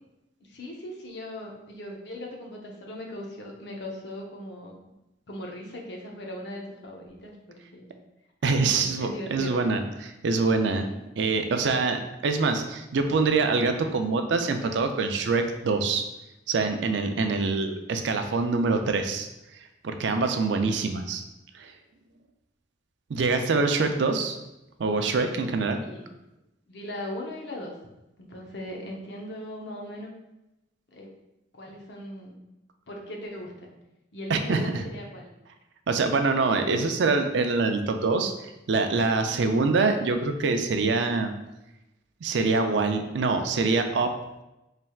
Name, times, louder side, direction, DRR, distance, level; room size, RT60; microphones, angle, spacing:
voice 1, 0.4-4.7 5.3-7.9 8.6-9.5 10.7-11.0 17.6-17.9 25.8-26.1 26.7-27.8 28.2-30.1 30.9-31.1 31.5-32.4 32.9-33.7 34.1-35.3 39.2-39.6, left 1 dB, 65° left, 0 dB, 0.7 m, -39 dB
voice 2, 8.4-10.9 11.2-16.0 16.5-19.3 19.8-21.2 21.5-21.7 23.1-24.4 24.8-25.8 34.3-34.8 35.9-41.3 42.2-44.1, right 3 dB, 70° right, 6 dB, 0.4 m, -25 dB
4.3 x 3.3 x 2.3 m, 0.93 s
head